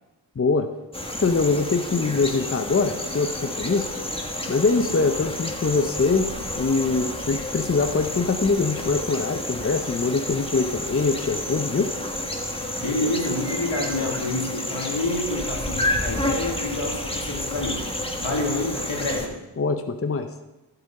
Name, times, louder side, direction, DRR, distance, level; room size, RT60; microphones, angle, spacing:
voice 1, 0.4-0.7 1.2-4.0 4.5-6.3 6.6-11.9 19.6-20.3, left 4 dB, 30° left, 8 dB, 0.7 m, -23 dB
sound 1, 0.9-19.3, left 1 dB, 10° left, 1.5 m, -30 dB
voice 2, 12.8-17.9 18.2-19.4, left 2 dB, 80° left, -1 dB, 2.5 m, -28 dB
12.0 x 6.8 x 5.5 m, 1.0 s
cardioid pair, 45°, 47 cm